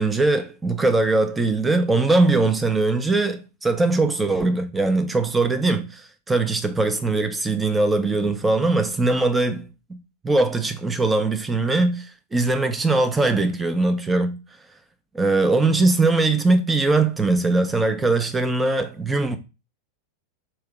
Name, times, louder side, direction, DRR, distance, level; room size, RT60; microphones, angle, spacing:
voice 1, 0.0-9.7 10.2-14.4 15.1-19.4, right 3 dB, 10° right, 0.6 m, -21 dB
4.3 x 2.8 x 3.5 m
figure-of-eight pair, 90°, 0 cm